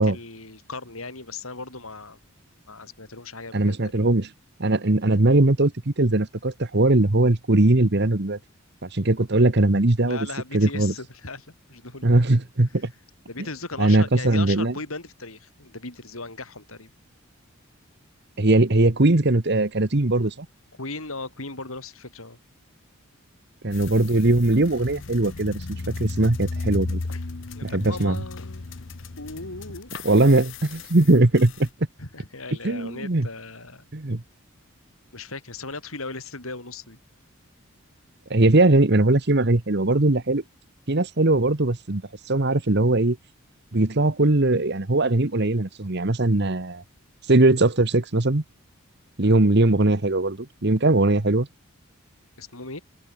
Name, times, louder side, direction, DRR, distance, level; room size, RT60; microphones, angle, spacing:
voice 1, 0.0-2.2 2.7-4.2 10.0-12.2 13.3-16.9 20.8-22.4 27.1-27.2 27.5-28.6 29.2-29.9 32.0-33.8 35.1-37.0 52.4-52.8, left 3 dB, 75° left, 5.5 m, -37 dB
voice 2, 3.5-4.3 4.6-8.4 8.8-10.2 10.5-10.9 12.0-12.9 13.8-14.7 18.4-20.5 23.6-27.0 27.6-28.2 30.0-31.7 32.6-33.3 33.9-34.2 38.3-40.4 40.9-42.0 42.3-43.2 43.7-46.8 47.3-48.4 49.2-51.5, right 2 dB, 50° right, 1.3 m, -20 dB
sound 1, 23.7-31.7, left 3 dB, 60° left, 0.9 m, -35 dB
head